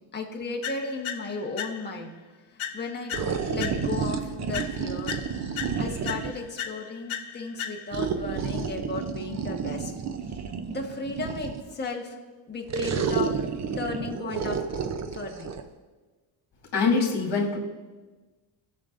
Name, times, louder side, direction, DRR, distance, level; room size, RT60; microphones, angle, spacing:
voice 1, 0.0-2.1 2.7-3.1 3.5-5.2 5.8-9.9 10.7-12.1 12.5-13.3 13.8-14.6 15.1-15.5, left 3 dB, 20° left, 0 dB, 1.4 m, -35 dB
sound 1, 0.6-2.1 2.6-4.1 4.5-8.1, left 8 dB, 75° left, 0.9 m, -37 dB
sound 2, 3.1-6.5 7.9-11.7 12.7-15.6, right 6 dB, 35° right, 0.6 m, -30 dB
voice 2, 16.7-17.6, left 4 dB, 50° left, -2 dB, 2.6 m, -23 dB
19.5 x 6.6 x 2.5 m, 1.3 s
cardioid pair, 140°, 49 cm